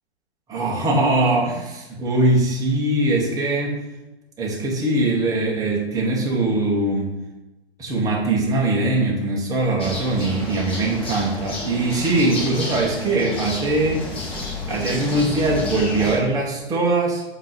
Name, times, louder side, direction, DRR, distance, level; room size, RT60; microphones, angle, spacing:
voice 1, 0.5-3.8 4.4-7.1 7.8-14.0 14.6-17.2, right 2 dB, 10° right, -2 dB, 1.0 m, -21 dB
sound 1, 9.8-16.2, left 2 dB, 15° left, 1.2 m, -31 dB
7.3 x 2.9 x 5.1 m, 1.0 s
figure-of-eight pair, 115°, 33 cm